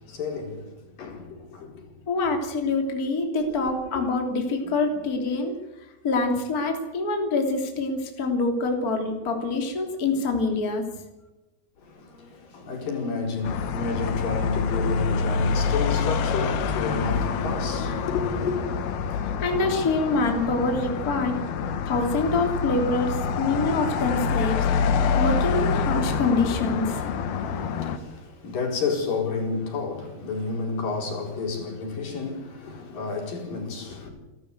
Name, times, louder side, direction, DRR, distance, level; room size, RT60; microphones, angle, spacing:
voice 1, 0.0-1.9 3.6-3.7 3.9-4.0 11.8-18.6 27.3-34.1, left 4 dB, 65° left, 6.0 m, -30 dB
voice 2, 2.1-10.8 19.1-21.4 21.9-24.6 25.1-27.1, left 3 dB, 25° left, 3.1 m, -25 dB
sound 1, 13.4-28.0, left 5 dB, 80° left, 3.5 m, -26 dB
29.5 x 13.5 x 8.2 m
omnidirectional pair, 4.3 m